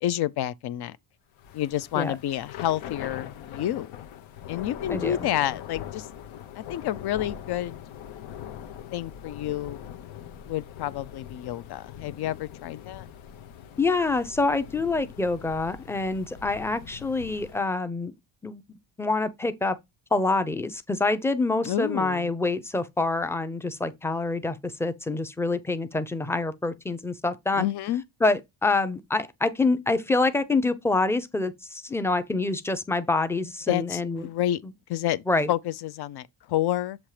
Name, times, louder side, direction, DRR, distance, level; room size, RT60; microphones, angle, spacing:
voice 1, 0.0-1.0 1.5-4.1 4.5-6.1 6.5-7.8 8.9-9.8 10.5-13.0 21.6-22.3 27.6-28.0 33.7-34.6 34.9-37.0, left 12 dB, 55° left, 0.6 m, -29 dB
Thunder / Rain, 1.4-17.7, left 9 dB, 85° left, 1.1 m, -42 dB
voice 2, 4.9-5.3 13.8-18.1 18.4-18.6 19.0-19.8 20.1-27.7 28.2-34.3 35.3-35.5, left 3 dB, 5° left, 0.6 m, -26 dB
7.3 x 3.0 x 4.9 m
cardioid pair, 135°, 46 cm